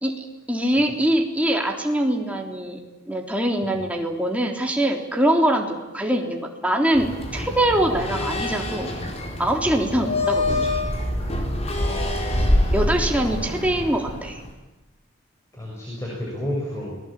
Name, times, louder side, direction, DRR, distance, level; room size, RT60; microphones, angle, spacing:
voice 1, 0.0-2.8 3.1-8.9 9.4-10.6 12.7-14.4, right 1 dB, 5° right, 1 dB, 3.5 m, -23 dB
sound 1, 6.9-14.5, left 1 dB, 30° left, 4.6 m, -25 dB
voice 2, 11.7-12.7 15.5-17.0, left 1 dB, 15° left, -4 dB, 7.5 m, -32 dB
29.5 x 20.5 x 9.1 m, 1.0 s
head